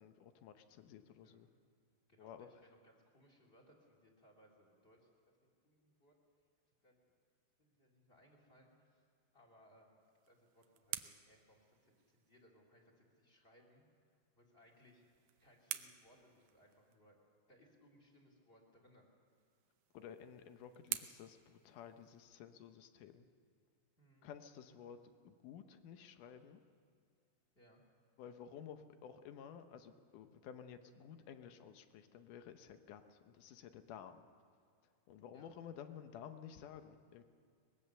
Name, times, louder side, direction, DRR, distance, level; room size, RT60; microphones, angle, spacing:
voice 1, 0.0-1.5 2.2-2.5 19.9-23.3 24.2-25.0 25.2-26.6 28.2-34.3 35.1-37.2, left 8 dB, 70° left, 8 dB, 2.2 m, -53 dB
voice 2, 2.1-5.1 5.4-6.2 6.8-7.1 7.6-9.0 9.3-13.8 14.3-15.0 15.4-17.2 17.5-19.0 24.0-24.3 27.5-27.8 35.3-35.6, equal, 15° left, 1 dB, 2.9 m, -67 dB
sound 1, 10.0-12.5 14.6-17.0 19.3-22.4, right 13 dB, 85° right, 1.7 m, -49 dB
23.5 x 20.5 x 6.8 m, 2.3 s
omnidirectional pair, 4.4 m